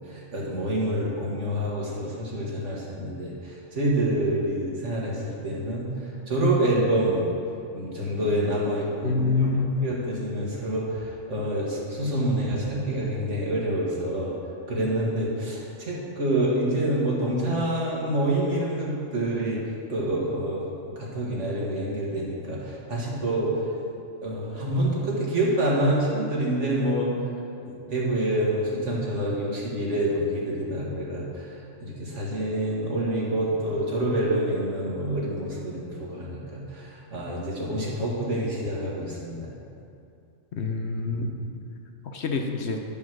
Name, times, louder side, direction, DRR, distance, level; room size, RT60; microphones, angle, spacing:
voice 1, 0.1-5.9 6.3-7.3 7.7-14.3 14.7-19.6 19.9-23.6 24.2-27.1 27.6-31.5 31.8-39.5, right 1 dB, 70° right, -4 dB, 2.1 m, -27 dB
voice 2, 9.0-9.9 40.5-41.3 42.1-42.8, left 4 dB, 60° left, 3 dB, 1.1 m, -26 dB
10.5 x 5.6 x 6.2 m, 2.5 s
omnidirectional pair, 1.3 m